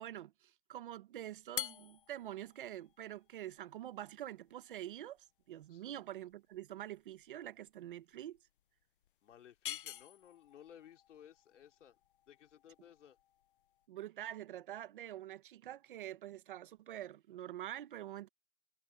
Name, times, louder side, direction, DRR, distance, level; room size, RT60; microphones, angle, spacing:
voice 1, 0.0-5.2 5.5-8.4 13.9-18.3, right 12 dB, 45° right, 1.1 m, -46 dB
sound 1, 1.4-13.9, left 12 dB, 45° left, 0.6 m, -49 dB
voice 2, 9.2-12.0 12.3-13.2, left 10 dB, 65° left, 3.5 m, -58 dB
hypercardioid pair, 175°, 38 cm